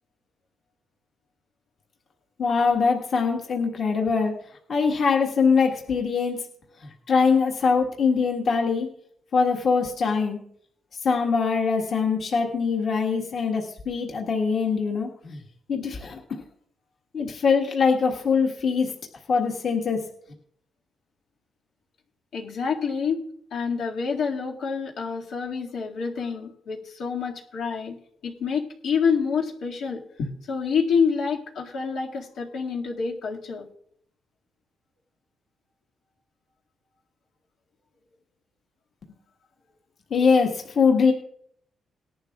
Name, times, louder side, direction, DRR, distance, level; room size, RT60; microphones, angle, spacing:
voice 1, 2.4-4.3 4.7-6.4 7.1-8.9 9.3-10.4 11.0-15.4 15.7-16.2 17.1-18.9 19.3-20.0 40.1-41.1, left 5 dB, 45° left, 1 dB, 1.5 m, -22 dB
voice 2, 22.3-23.2 23.5-28.0 28.2-33.7, left 5 dB, 85° left, -2 dB, 2.1 m, -27 dB
19.0 x 11.0 x 2.4 m, 0.63 s
wide cardioid pair, 175°, 0 cm